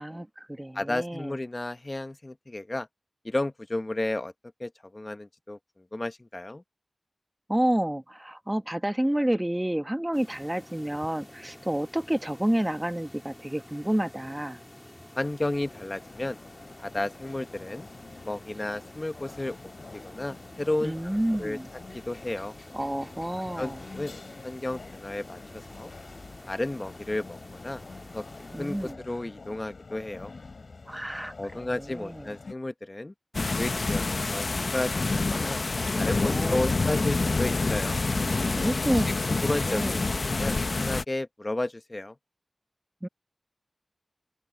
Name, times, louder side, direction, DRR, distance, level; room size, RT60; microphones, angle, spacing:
voice 1, 0.0-1.4 7.5-14.6 20.8-21.7 22.7-23.8 28.5-29.0 30.9-32.3 36.2-36.7 38.5-40.0 43.0-43.1, right 1 dB, 15° right, 1.1 m, -30 dB
voice 2, 0.7-2.9 3.2-4.3 4.6-5.6 5.9-6.6 15.1-16.4 16.8-17.9 18.3-19.6 19.9-21.6 21.9-22.5 23.6-24.2 24.4-25.9 26.5-27.8 28.1-28.2 28.6-30.3 31.4-33.1 33.6-34.5 34.7-35.6 36.0-38.0 39.3-40.0 40.3-42.1, left 2 dB, 35° left, 1.0 m, -32 dB
sound 1, 10.1-28.9, left 1 dB, 20° left, 1.6 m, -49 dB
sound 2, 15.2-32.5, left 4 dB, 90° left, 4.8 m, -47 dB
sound 3, 33.3-41.0, left 3 dB, 65° left, 0.6 m, -27 dB
wide cardioid pair, 70°, 0 cm